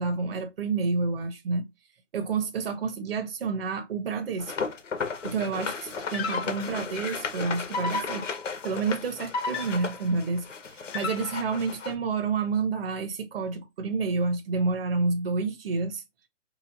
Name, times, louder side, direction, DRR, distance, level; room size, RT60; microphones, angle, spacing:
voice 1, 0.0-1.6 2.1-4.5 5.2-8.2 8.6-16.0, right 4 dB, 50° right, 1.0 m, -29 dB
sound 1, 4.4-11.9, left 5 dB, 75° left, 1.1 m, -35 dB
sound 2, 5.0-5.3 6.1-6.9 7.7-8.6 9.3-10.1 10.9-11.6, left 4 dB, 15° left, 1.0 m, -33 dB
4.6 x 3.1 x 2.7 m
hypercardioid pair, 150°, 37 cm